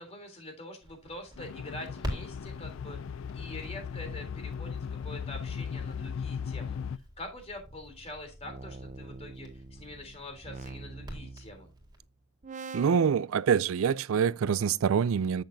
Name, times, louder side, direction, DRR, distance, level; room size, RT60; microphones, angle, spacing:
voice 1, 0.0-6.8 7.2-11.7, left 1 dB, 30° left, 3.3 m, -45 dB
Crackle, 0.8-12.0, equal, 20° right, 3.8 m, -46 dB
sound 1, 1.4-7.0, left 6 dB, 65° left, 0.4 m, -37 dB
sound 2, 7.6-12.0 12.4-13.1, right 4 dB, 35° right, 0.6 m, -45 dB
voice 2, 12.7-15.4, right 7 dB, 75° right, 0.4 m, -25 dB
10.5 x 7.9 x 2.7 m
head